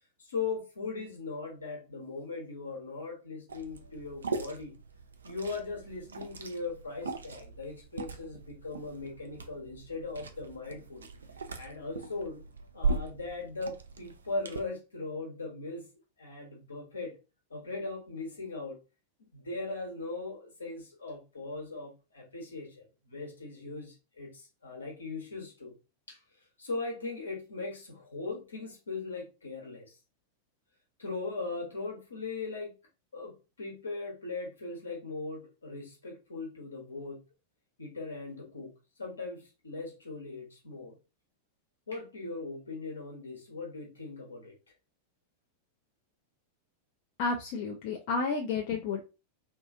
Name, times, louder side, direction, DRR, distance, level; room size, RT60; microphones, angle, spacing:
voice 1, 0.2-4.7 5.2-11.1 11.5-12.4 12.7-15.8 16.2-17.1 17.5-18.8 19.3-25.7 26.1-26.2 26.6-30.0 31.0-32.7 33.1-37.2 37.8-38.7 39.0-41.0 41.9-44.5, left 3 dB, 75° left, 0 dB, 0.9 m, -39 dB
Liquid, 3.5-14.6, right 4 dB, 70° right, 0.3 m, -39 dB
voice 2, 47.2-49.0, left 4 dB, 45° left, 1 dB, 0.4 m, -31 dB
2.7 x 2.3 x 2.5 m, 0.30 s
figure-of-eight pair, 90°, 0 cm